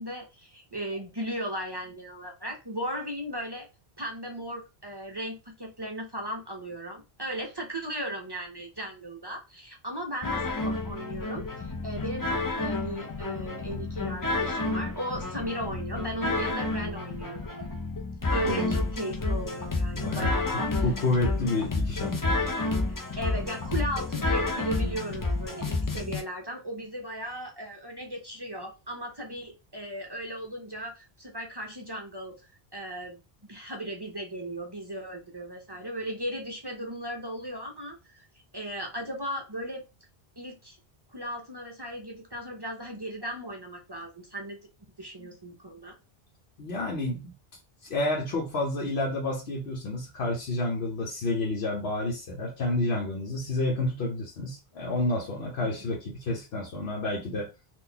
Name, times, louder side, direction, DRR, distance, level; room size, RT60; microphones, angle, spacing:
voice 1, 0.0-3.7 4.0-17.6 18.3-20.8 23.2-32.3 32.7-33.2 33.5-38.2 38.5-39.8 40.4-40.8 41.1-44.6 45.0-46.0 55.6-55.7, equal, 30° right, 0.6 m, -36 dB
sound 1, 10.2-26.2, left 2 dB, 30° left, 0.4 m, -30 dB
voice 2, 18.5-18.8 19.9-22.3 46.6-47.3 47.9-57.5, left 2 dB, 80° left, 1.1 m, -30 dB
3.9 x 2.5 x 2.8 m
omnidirectional pair, 1.0 m